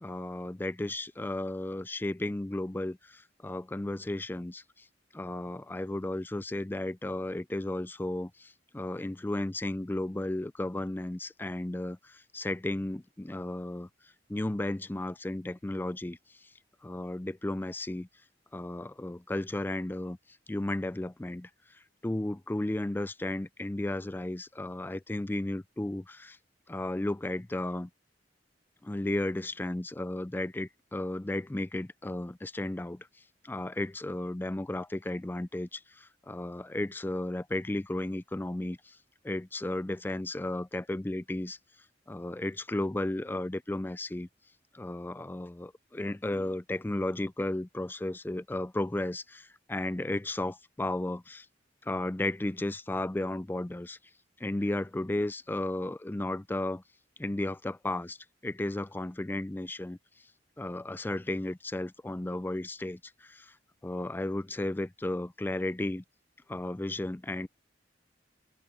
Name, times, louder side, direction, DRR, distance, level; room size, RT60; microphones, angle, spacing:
voice 1, 0.0-4.6 5.1-13.9 14.3-16.2 16.8-18.1 18.5-20.2 20.5-21.5 22.0-26.4 26.7-27.9 28.8-33.1 33.4-39.0 39.2-41.6 42.1-44.3 44.7-51.5 51.8-54.0 54.4-56.8 57.2-58.2 58.4-60.0 60.6-63.5 63.8-66.0 66.5-67.5, left 1 dB, 10° left, 0.4 m, -34 dB
open air
head